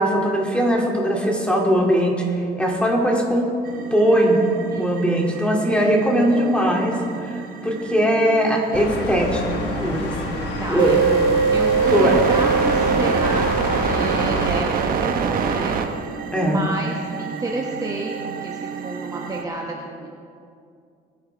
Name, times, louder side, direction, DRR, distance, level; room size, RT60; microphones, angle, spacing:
voice 1, 0.0-3.5 3.9-4.4 4.8-10.1 10.7-11.1 11.9-12.2 16.3-16.6, equal, 5° left, -1 dB, 2.6 m, -20 dB
sound 1, 3.6-19.4, right 6 dB, 55° right, 1.1 m, -28 dB
voice 2, 4.7-6.0 10.6-11.0 11.5-15.8 16.4-20.2, right 2 dB, 20° right, -1 dB, 1.3 m, -30 dB
sound 2, 8.7-14.6, left 3 dB, 90° left, 1.5 m, -29 dB
sound 3, 10.8-16.1, right 6 dB, 90° right, 0.7 m, -23 dB
21.0 x 10.0 x 3.5 m, 2.4 s
cardioid pair, 110°, 17 cm